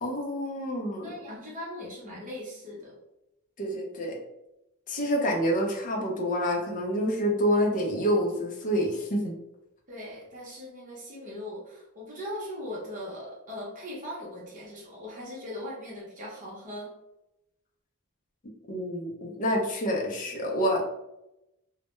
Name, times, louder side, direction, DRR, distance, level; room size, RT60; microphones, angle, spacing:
voice 1, 0.0-1.1 3.6-4.2 4.9-9.3 18.7-20.8, equal, 35° left, 0 dB, 0.5 m, -27 dB
voice 2, 1.0-2.9 9.9-16.9, left 1 dB, 35° right, -5 dB, 0.7 m, -39 dB
2.1 x 2.1 x 2.9 m, 0.89 s
head